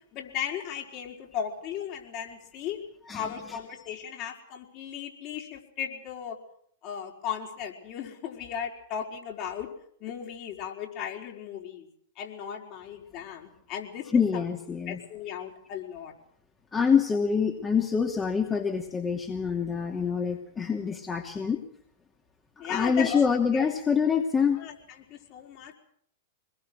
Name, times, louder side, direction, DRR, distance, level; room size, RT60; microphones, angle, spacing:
voice 1, 0.1-2.8 3.1-6.4 6.8-9.7 10.0-11.9 12.2-14.0 14.3-14.4 14.9-16.1 22.6-23.2 23.5-23.6 24.6-24.7 25.1-25.7, left 8 dB, 40° left, 1 dB, 5.1 m, -36 dB
voice 2, 14.1-15.0 16.7-21.6 22.7-24.6, left 6 dB, 20° left, 2 dB, 2.7 m, -25 dB
25.5 x 21.5 x 6.5 m, 0.65 s
figure-of-eight pair, 100°, 0 cm